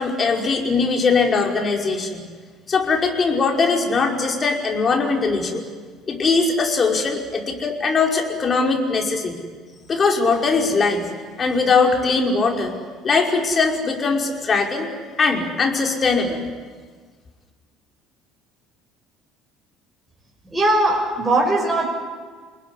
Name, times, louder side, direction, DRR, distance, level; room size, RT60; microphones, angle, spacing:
voice 1, 0.0-2.2 2.7-5.6 6.1-9.4 9.9-11.1 11.4-12.7 13.0-14.9 15.2-16.4, left 4 dB, 35° left, 2 dB, 5.4 m, -20 dB
voice 2, 20.4-21.9, right 2 dB, 15° right, -2 dB, 5.8 m, -19 dB
29.5 x 20.0 x 10.0 m, 1.6 s
figure-of-eight pair, 60°, 0 cm